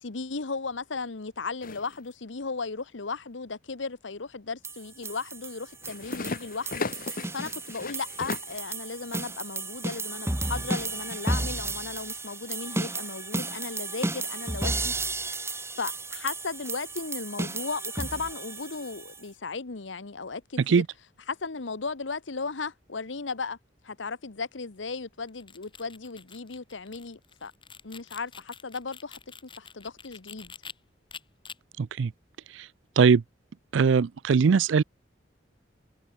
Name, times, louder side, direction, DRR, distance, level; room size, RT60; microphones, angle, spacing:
voice 1, 0.0-14.9 15.8-20.8 21.3-23.6 23.8-27.5 27.8-30.5, left 4 dB, 85° left, 1.1 m, -36 dB
sound 1, 1.6-2.0 5.7-8.6, left 3 dB, 50° left, 1.4 m, -36 dB
sound 2, 4.6-19.2, right 2 dB, 15° right, 2.2 m, -33 dB
sound 3, 25.2-30.7 31.1-31.6, left 6 dB, 25° left, 2.2 m, -47 dB
voice 2, 31.8-32.1 33.0-33.2 33.7-34.8, right 5 dB, 90° right, 0.4 m, -20 dB
head